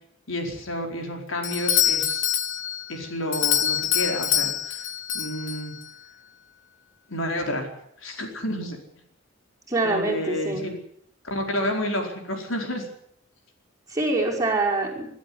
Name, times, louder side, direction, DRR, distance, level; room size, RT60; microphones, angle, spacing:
voice 1, 0.3-2.3 2.9-4.8 5.1-5.7 7.1-7.7 8.0-8.8 9.8-10.8 11.2-12.9, left 1 dB, 85° left, 3 dB, 4.8 m, -30 dB
Doorbell, 1.4-5.9, left 10 dB, 70° left, 1.5 m, -25 dB
voice 2, 9.7-10.7 13.9-15.1, right 2 dB, 20° right, -2 dB, 5.5 m, -25 dB
22.5 x 12.5 x 9.6 m, 0.71 s
head